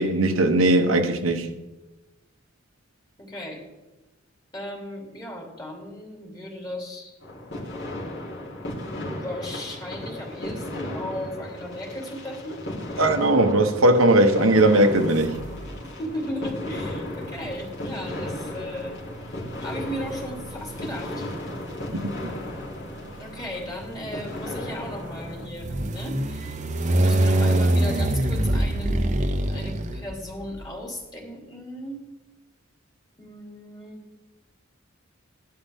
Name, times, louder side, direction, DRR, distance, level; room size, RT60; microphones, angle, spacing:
voice 1, 0.0-1.5 13.0-15.3 21.9-22.1, right 1 dB, 90° right, 1.1 m, -19 dB
voice 2, 3.2-3.6 4.5-7.1 8.2-8.5 8.9-12.6 15.8-19.0 19.2-19.3 19.6-21.3 23.2-26.6 27.0-32.0 33.2-34.0, equal, 20° left, 3.0 m, -36 dB
sound 1, 7.2-25.5, left 1 dB, 60° left, 3.1 m, -35 dB
sound 2, 15.1-15.9 16.9-30.6, right 1 dB, 35° right, 0.8 m, -27 dB
16.5 x 11.5 x 3.6 m
head